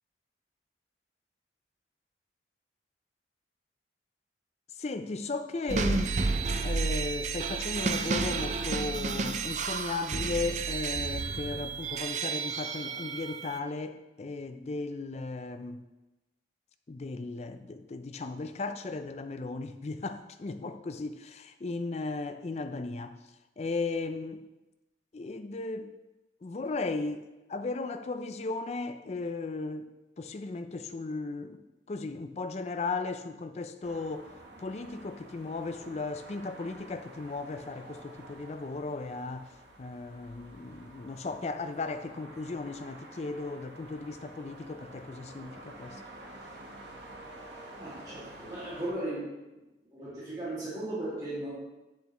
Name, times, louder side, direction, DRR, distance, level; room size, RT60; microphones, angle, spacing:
voice 1, 4.8-6.2 6.6-15.8 16.9-23.2 23.6-24.5 25.1-26.0 26.4-29.9 30.2-34.3 34.6-39.5 39.8-46.0, left 3 dB, 35° left, 9 dB, 0.4 m, -36 dB
sound 1, 5.7-13.6, right 4 dB, 40° right, 0.4 m, -31 dB
sound 2, 33.8-48.9, right 1 dB, 75° right, 1.2 m, -49 dB
voice 2, 47.8-49.4 49.9-51.5, right 1 dB, 20° right, -10 dB, 2.1 m, -36 dB
8.2 x 6.9 x 3.0 m, 1.0 s
head